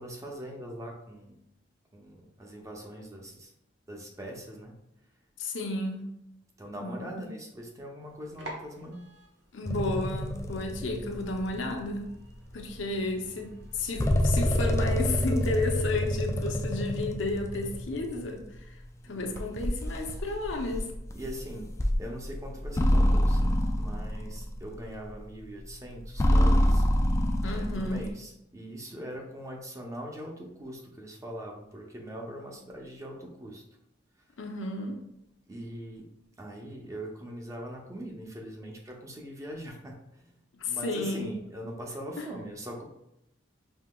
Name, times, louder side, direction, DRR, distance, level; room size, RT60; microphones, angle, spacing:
voice 1, 0.0-1.4 1.9-3.5 3.9-4.7 6.6-9.0 19.0-19.5 21.1-21.7 22.0-23.5 23.8-26.8 27.5-33.6 35.5-36.0 36.4-40.3 40.6-42.8, equal, 15° right, 0 dB, 0.6 m, -41 dB
voice 2, 5.4-6.1 6.8-7.3 9.5-12.1 12.5-18.4 19.1-20.8 27.4-28.1 34.4-35.0 40.6-41.3 42.2-42.3, left 2 dB, 85° left, 2 dB, 0.7 m, -32 dB
sound 1, 8.0-15.6, right 1 dB, 75° right, 0.9 m, -51 dB
sound 2, 9.6-11.8 12.5-12.6 13.7-18.8 19.4-25.2 25.7-28.1, equal, 15° left, 0.3 m, -27 dB
5.4 x 2.8 x 2.2 m, 0.83 s
head